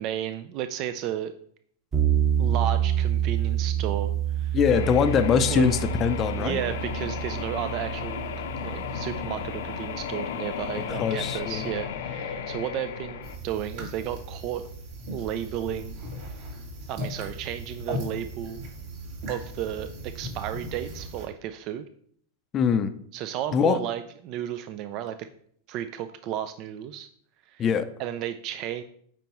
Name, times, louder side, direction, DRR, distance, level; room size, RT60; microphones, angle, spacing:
voice 1, 0.0-1.3 2.4-4.6 5.5-5.8 6.3-8.3 8.6-14.6 15.1-16.0 16.9-18.6 19.3-21.9 23.1-25.2 25.7-27.1 27.5-27.6 28.0-28.8, right 11 dB, 45° right, 10 dB, 0.4 m, -33 dB
sound 1, 1.9-10.1, right 10 dB, 30° right, 1.1 m, -28 dB
voice 2, 4.5-6.6 10.9-11.6 22.5-22.9 23.5-23.8 27.6-27.9, left 7 dB, 30° left, 9 dB, 0.5 m, -23 dB
sound 2, 4.7-13.4, left 7 dB, 80° left, 0.8 m, -34 dB
sound 3, 13.2-21.3, equal, 60° right, 2.7 m, -38 dB
8.8 x 4.6 x 3.0 m, 0.62 s
hypercardioid pair, 125°, 0 cm